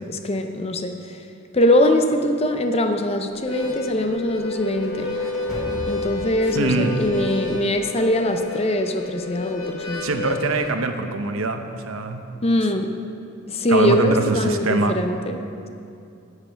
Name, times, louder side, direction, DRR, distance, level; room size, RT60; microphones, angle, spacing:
voice 1, 0.1-1.2 1.5-5.1 5.9-10.0 12.4-12.9 13.5-15.4, left 1 dB, 30° left, 6 dB, 0.6 m, -22 dB
Harmonica, 3.3-10.7, left 3 dB, 65° left, 1.3 m, -30 dB
sound 1, 4.5-8.4, right 1 dB, 5° right, 1.3 m, -38 dB
voice 2, 6.5-7.0 10.0-12.2 13.7-14.9, right 3 dB, 75° right, 6 dB, 0.8 m, -23 dB
8.8 x 8.4 x 6.9 m, 2.5 s
head